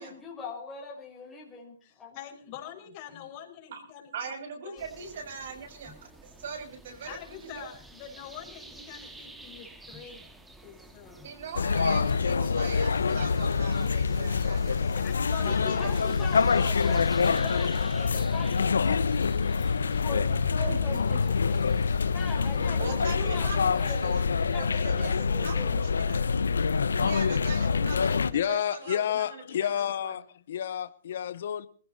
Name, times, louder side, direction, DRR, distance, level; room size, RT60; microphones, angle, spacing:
voice 1, 0.0-2.2 15.4-19.1 19.7-21.6 22.1-25.8, left 4 dB, 10° left, 5.1 m, -41 dB
voice 2, 1.8-4.3 4.6-4.8 7.0-10.2 10.6-11.2 12.4-12.6 14.9-17.0, left 9 dB, 35° left, 6.2 m, -45 dB
voice 3, 4.1-5.9 6.2-7.7 11.2-14.8 15.3-16.0 20.7-20.8 22.8-26.2 26.9-30.1, right 5 dB, 60° right, 7.5 m, -40 dB
sound 1, 4.8-24.3, right 1 dB, 5° right, 2.2 m, -50 dB
sound 2, 11.6-28.3, left 5 dB, 85° left, 1.0 m, -26 dB
voice 4, 28.3-31.7, left 10 dB, 60° left, 1.0 m, -30 dB
20.5 x 15.5 x 4.1 m
hypercardioid pair, 140°, 0 cm